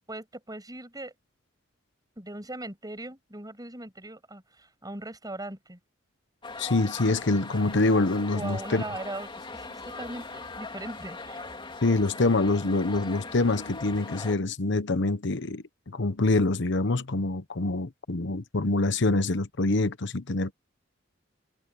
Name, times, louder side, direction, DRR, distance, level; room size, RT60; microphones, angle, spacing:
voice 1, 0.1-1.1 2.2-5.8 8.3-11.5, right 1 dB, 20° right, 7.7 m, -39 dB
sound 1, 6.4-14.4, left 3 dB, 25° left, 2.7 m, -40 dB
voice 2, 6.6-8.8 11.8-15.6 15.9-20.5, left 2 dB, 65° left, 1.0 m, -25 dB
head